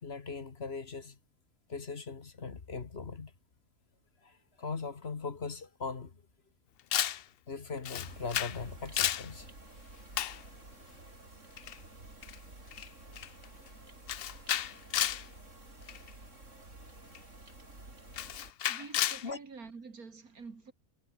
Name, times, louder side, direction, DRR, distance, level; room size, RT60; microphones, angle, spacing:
voice 1, 0.0-1.2 1.7-3.3 4.2-6.2 7.5-9.5 18.7-18.8 19.2-19.4, left 4 dB, 45° left, 1.7 m, -40 dB
Camera, 6.9-7.2 7.9-8.6 8.9-9.3 10.2-10.4 11.6-11.8 12.2-12.4 12.7-12.9 13.2-13.5 14.1-15.3 15.9-16.1 17.2-17.3 18.1-19.3, left 11 dB, 65° left, 0.6 m, -32 dB
sound 1, 8.1-18.5, right 2 dB, 55° right, 5.7 m, -52 dB
voice 2, 18.7-20.7, right 4 dB, 80° right, 3.0 m, -47 dB
omnidirectional pair, 1.5 m